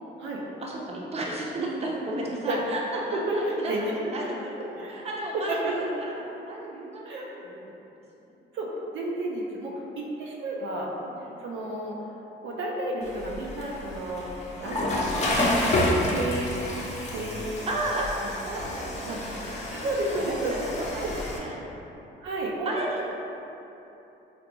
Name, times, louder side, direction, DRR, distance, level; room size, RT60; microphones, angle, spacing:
voice 1, 0.6-4.5 4.9-5.6 6.5-7.6 11.0-11.5 17.7-18.1 18.4-19.5 20.1-21.6 22.7-23.0, right 1 dB, 30° right, -3 dB, 0.6 m, -33 dB
voice 2, 3.1-4.1 4.8-5.0 5.3-5.7 7.1-7.3 8.5-10.9 11.4-12.0 12.4-14.3 14.6-15.5 16.1-16.7 17.1-17.5 18.2-18.6 19.0-19.2 19.7-20.6 22.2-22.7, right 2 dB, 75° right, -3 dB, 0.5 m, -31 dB
Water / Toilet flush, 13.0-21.4, left 1 dB, 35° left, 0.6 m, -29 dB
3.9 x 2.2 x 2.9 m, 3.0 s
cardioid pair, 90°, 20 cm